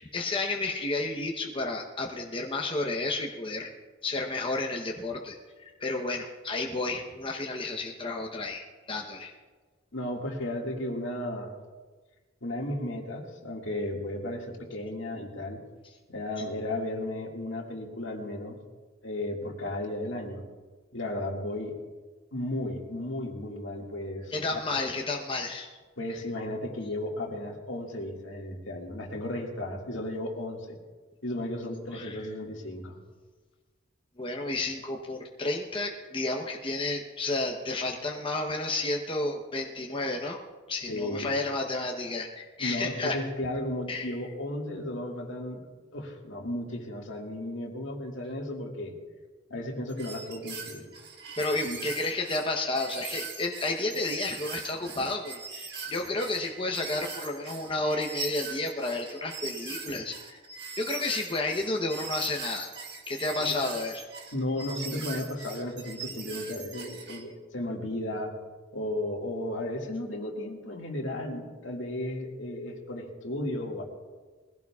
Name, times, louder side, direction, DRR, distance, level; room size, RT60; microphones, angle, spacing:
voice 1, 0.0-3.7 4.0-5.4 5.8-9.3 24.3-25.7 31.7-32.2 34.2-40.4 40.7-43.2 43.9-44.1 51.4-60.4 60.8-62.7 63.1-64.1, left 2 dB, 25° left, 1 dB, 0.8 m, -31 dB
voice 2, 9.9-11.5 12.4-15.6 16.1-18.6 19.0-20.4 20.9-21.8 22.3-24.8 26.0-30.8 31.2-33.0 40.9-41.3 42.6-45.7 45.9-48.9 49.5-50.9 51.6-51.8 63.4-63.5 64.3-68.3 68.7-73.8, left 1 dB, 75° left, 0 dB, 1.9 m, -34 dB
sound 1, 49.9-67.2, right 5 dB, 55° right, 1.6 m, -41 dB
21.0 x 16.0 x 2.4 m, 1.4 s
head